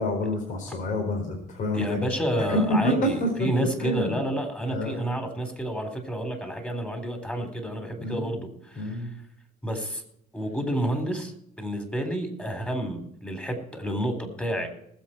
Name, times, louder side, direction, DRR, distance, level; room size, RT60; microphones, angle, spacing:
voice 1, 0.0-2.1 2.4-3.5 3.8-4.2 4.7-5.0 8.0-8.3 8.8-9.1, left 1 dB, 50° left, 2 dB, 4.4 m, -27 dB
voice 2, 1.7-9.0 9.6-10.0 10.3-11.3 11.6-14.7, right 1 dB, 5° left, 6 dB, 3.8 m, -30 dB
19.5 x 8.0 x 4.5 m, 0.73 s
cardioid pair, 110°, 17 cm